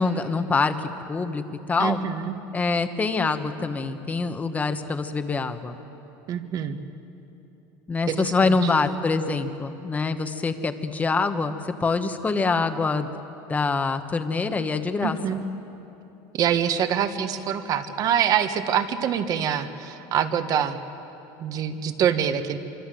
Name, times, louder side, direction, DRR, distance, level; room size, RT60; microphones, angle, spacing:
voice 1, 0.0-2.0 2.5-5.8 7.9-13.1 13.5-15.4, left 4 dB, 15° left, 8 dB, 1.2 m, -25 dB
voice 2, 1.8-2.3 6.3-6.8 8.1-8.6 15.0-15.4 16.3-20.8 21.4-22.6, right 8 dB, 40° right, 9 dB, 1.4 m, -25 dB
25.0 x 25.0 x 7.7 m, 3.0 s
cardioid pair, 145°, 10 cm